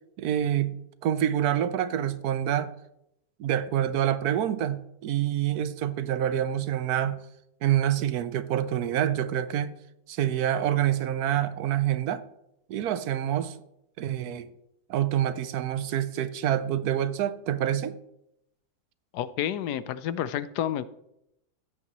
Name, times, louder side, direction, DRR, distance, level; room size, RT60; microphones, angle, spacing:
voice 1, 0.2-2.7 3.4-7.2 7.6-9.7 10.1-12.2 12.7-13.6 14.0-14.5 14.9-18.0, right 11 dB, 75° right, 1.1 m, -27 dB
voice 2, 19.1-20.9, left 10 dB, 80° left, 1.1 m, -30 dB
15.5 x 8.5 x 3.0 m
omnidirectional pair, 1.7 m